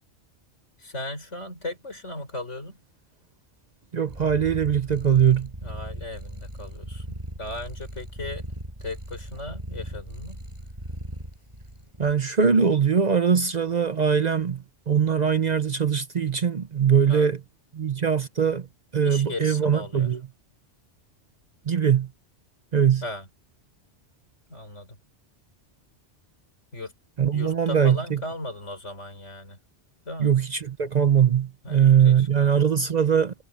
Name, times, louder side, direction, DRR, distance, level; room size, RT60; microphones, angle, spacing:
voice 1, 0.8-2.8 5.6-8.5 8.8-10.4 17.1-17.3 19.0-20.2 23.0-23.3 24.5-25.0 26.7-26.9 27.3-29.6 30.1-30.4 31.6-32.7, left 2 dB, 85° left, 5.2 m, -37 dB
voice 2, 3.9-5.5 12.0-17.4 17.7-18.7 18.9-20.2 21.7-22.1 22.7-23.0 27.2-28.2 30.2-33.3, right 7 dB, 45° right, 0.7 m, -21 dB
Purr, 4.1-12.1, right 1 dB, 25° right, 8.2 m, -38 dB
omnidirectional pair, 1.2 m